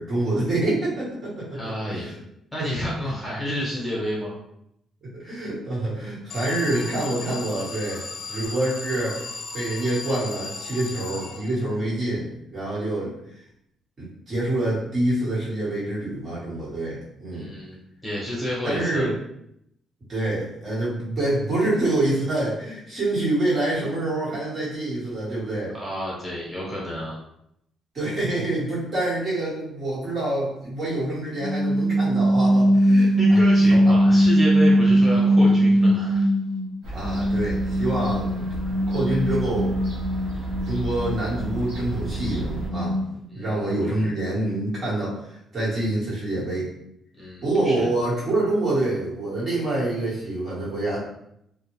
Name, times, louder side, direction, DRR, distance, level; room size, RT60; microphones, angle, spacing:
voice 1, 0.0-2.1 2.6-2.7 5.1-8.0 8.3-9.2 9.5-13.1 14.0-17.5 18.6-19.1 20.1-25.7 27.9-33.4 33.7-33.9 34.9-35.0 36.9-38.5 38.9-39.7 40.6-43.0 43.3-46.7 47.4-51.0, right 1 dB, 45° right, -7 dB, 1.4 m, -26 dB
voice 2, 1.5-2.1 2.5-4.4 17.3-19.1 25.7-27.2 33.2-36.3 43.3-44.1 47.2-47.9, equal, 10° left, -5 dB, 1.1 m, -30 dB
Alarm, 6.3-11.9, left 3 dB, 55° left, 0.5 m, -36 dB
sound 1, 31.4-36.7 37.0-43.2, equal, 10° right, 0.8 m, -20 dB
Fowl / Gull seagull, 36.8-42.7, right 3 dB, 90° right, 0.9 m, -33 dB
2.4 x 2.2 x 3.0 m, 0.76 s
cardioid pair, 90°, 0 cm